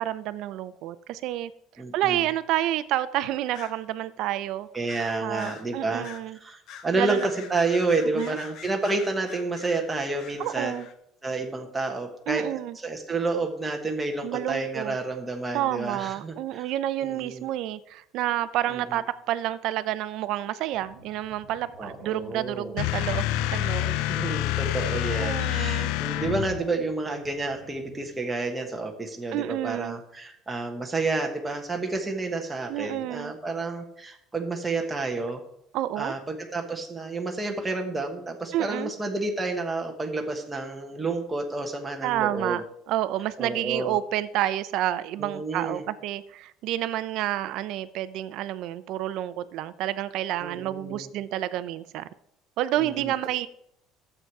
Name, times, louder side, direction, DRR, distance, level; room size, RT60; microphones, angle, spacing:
voice 1, 0.0-1.5 1.9-4.7 5.2-6.4 6.9-7.3 8.1-8.4 10.4-10.9 12.3-12.8 14.2-14.9 15.5-24.1 25.0-25.9 29.3-30.0 32.7-33.3 35.7-36.1 38.5-38.9 42.0-52.1 52.6-53.5, right 13 dB, 55° right, 0.6 m, -29 dB
voice 2, 1.8-2.3 4.7-6.1 6.4-10.8 11.2-16.7 17.0-17.5 18.7-19.0 21.8-22.7 24.1-35.4 36.0-42.6 43.4-44.0 45.2-45.8 50.4-51.1 52.8-53.1, right 3 dB, 10° right, 1.3 m, -30 dB
sound 1, 3.5-3.8 4.9-5.7 6.0-6.3 6.7-10.9, left 8 dB, 50° left, 1.0 m, -45 dB
sound 2, 20.6-28.2, left 1 dB, 30° left, 5.2 m, -52 dB
sound 3, 22.8-26.7, left 15 dB, 80° left, 0.5 m, -27 dB
12.0 x 7.8 x 4.7 m
cardioid pair, 170°, 0 cm